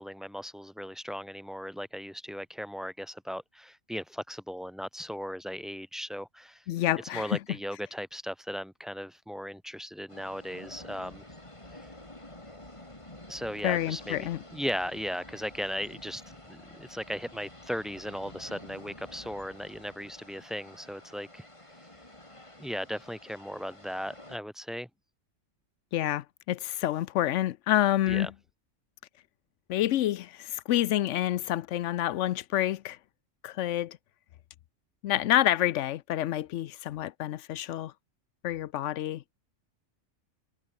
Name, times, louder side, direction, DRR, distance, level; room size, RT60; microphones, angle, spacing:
voice 1, 0.0-6.6 7.1-11.2 11.7-11.9 13.3-16.2 16.5-21.4 22.6-24.9 28.1-28.3, equal, ahead, 0.8 m, -37 dB
voice 2, 6.7-7.4 13.6-14.4 25.9-28.3 29.7-33.0 33.4-34.0 35.0-37.9 38.4-39.2, left 13 dB, 75° left, 0.9 m, -28 dB
sound 1, 10.1-24.4, left 1 dB, 25° left, 3.6 m, -49 dB
omnidirectional pair, 1.3 m